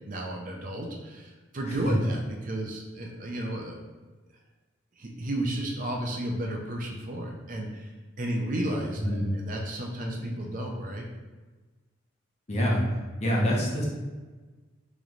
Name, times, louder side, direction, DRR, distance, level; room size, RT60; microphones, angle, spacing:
voice 1, 0.1-3.7 5.0-11.1, right 1 dB, 40° right, 0 dB, 0.5 m, -33 dB
voice 2, 12.5-12.8 13.2-13.9, equal, 35° left, -4 dB, 0.8 m, -25 dB
3.1 x 3.1 x 3.8 m, 1.3 s
head